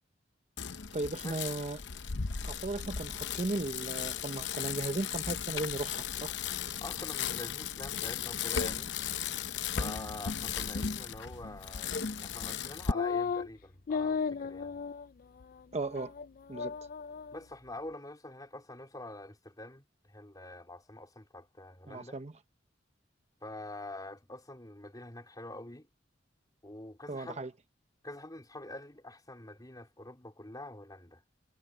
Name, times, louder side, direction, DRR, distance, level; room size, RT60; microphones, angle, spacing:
Bicycle, 0.6-12.9, left 7 dB, 65° left, 0.8 m, -36 dB
voice 1, 0.9-1.8 2.4-6.3 9.7-9.9 15.7-16.1 16.5-16.7 21.9-22.3 27.1-27.5, right 2 dB, 35° right, 0.9 m, -36 dB
voice 2, 6.8-8.9 9.8-14.7 17.3-22.2 23.4-25.9 26.6-27.4 28.0-31.2, left 2 dB, 20° left, 3.7 m, -46 dB
sound 1, 12.9-13.5 13.9-15.1 15.4-15.5 15.9-16.3 16.5-17.4, left 5 dB, 50° left, 0.4 m, -34 dB
head